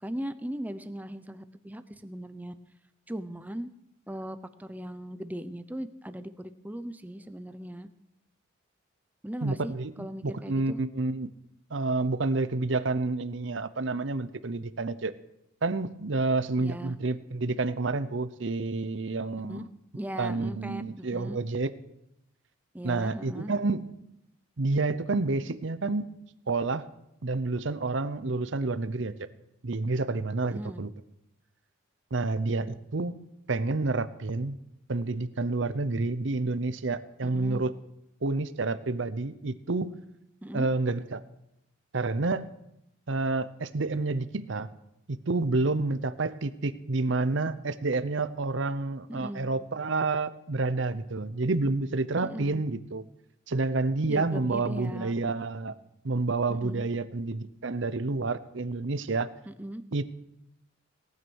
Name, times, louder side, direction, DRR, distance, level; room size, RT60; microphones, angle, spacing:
voice 1, 0.0-2.5 3.1-3.7 4.1-7.9 9.2-9.7 10.0-10.8 16.6-16.9 19.5-19.6 19.9-21.4 22.7-23.5 30.5-30.8 37.2-37.7 40.4-40.7 49.1-49.5 52.2-52.6 54.1-55.1 56.5-56.8 59.5-59.8, right 1 dB, 10° right, 11 dB, 0.6 m, -38 dB
voice 2, 9.4-11.3 11.7-15.1 15.6-19.7 20.2-21.7 22.8-23.8 24.6-26.1 26.5-26.9 27.2-29.1 29.6-30.9 32.1-33.1 33.5-34.6 34.9-37.7 38.2-39.9 40.5-41.2 41.9-42.5 43.1-44.7 45.1-53.0 53.5-55.7 56.0-59.3 59.9-60.0, right 3 dB, 65° right, 12 dB, 0.7 m, -29 dB
18.0 x 9.5 x 6.3 m, 0.81 s
head